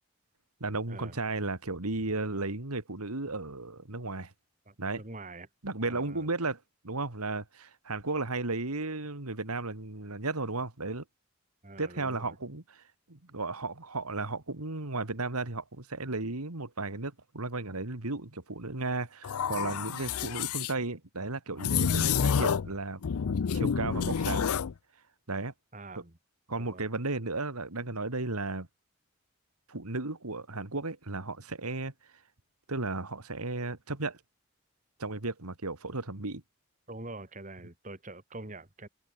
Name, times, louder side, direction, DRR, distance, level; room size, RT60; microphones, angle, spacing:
voice 1, 0.6-4.3 4.8-5.0 5.6-11.0 11.8-12.8 13.1-23.0 23.5-24.5 25.3-25.5 26.5-28.7 29.7-31.9 32.7-34.2 35.0-36.4, right 3 dB, 90° right, 2.4 m, -34 dB
voice 2, 4.7-5.5 5.9-6.3 11.6-12.4 25.7-26.2 26.6-26.9 36.9-38.9, right 2 dB, 35° right, 2.1 m, -45 dB
sound 1, 19.2-20.7 21.6-22.7 23.0-24.7, left 7 dB, 80° left, 0.5 m, -29 dB
head